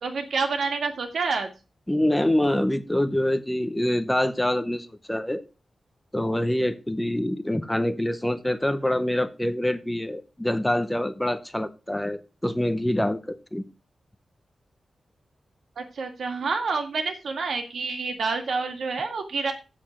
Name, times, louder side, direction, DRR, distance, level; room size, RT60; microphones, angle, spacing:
voice 1, 0.0-1.5 15.8-19.5, right 4 dB, 70° right, 6 dB, 2.0 m, -28 dB
voice 2, 1.9-5.4 6.1-13.6, left 1 dB, 5° left, 11 dB, 0.7 m, -25 dB
7.7 x 6.6 x 6.2 m, 0.31 s
wide cardioid pair, 175°, 0 cm